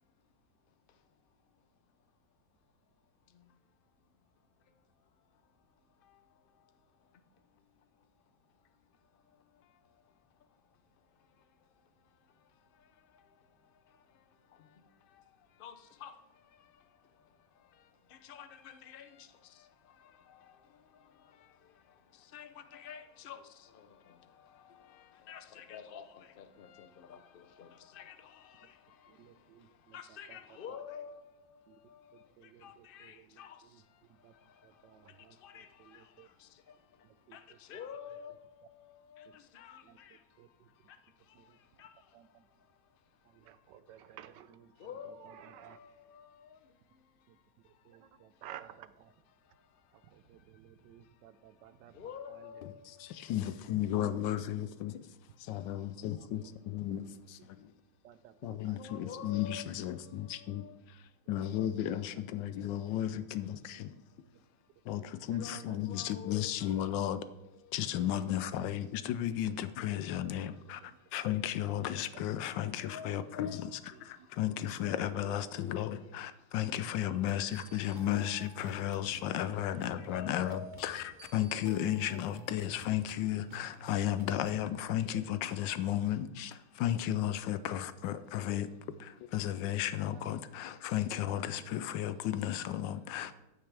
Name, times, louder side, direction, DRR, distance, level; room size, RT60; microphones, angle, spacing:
voice 1, 0.0-1.6 1.9-2.1 3.2-3.9 4.3-44.0 44.8-48.4 49.3-53.6 55.4-55.7 57.5-57.7 58.6-60.8 64.0-64.9 65.4-67.8 70.4-71.1 72.4-72.5 72.8-74.5 75.0-75.3 76.3-76.5 77.1-77.2 79.2-79.6 80.0-80.9 86.6-86.8, left 7 dB, 55° left, 0.6 m, -53 dB
voice 2, 29.1-30.8 31.7-31.8 32.4-33.8 34.1-36.3 37.0-37.6 39.8-40.7 41.3-41.8 42.1-42.5 43.2-45.8 47.3-47.4 47.8-49.1 49.9-52.6 54.3-54.4 56.2-56.5 57.0-57.1 57.4-57.5 58.0-59.2 61.9-62.2 63.1-63.2 65.0-65.9 68.4-68.9 70.2-70.3 70.8-71.0 72.1-72.2 73.9-74.3 74.9-75.4 77.4-77.5 90.1-90.2, right 10 dB, 75° right, 1.3 m, -56 dB
voice 3, 52.6-55.1 55.4-57.7 58.4-64.0 64.8-67.2 67.7-88.7 89.0-93.3, left 11 dB, 90° left, 1.3 m, -34 dB
sound 1, 77.3-84.7, right 3 dB, 50° right, 0.6 m, -54 dB
14.5 x 9.1 x 3.4 m
omnidirectional pair, 1.9 m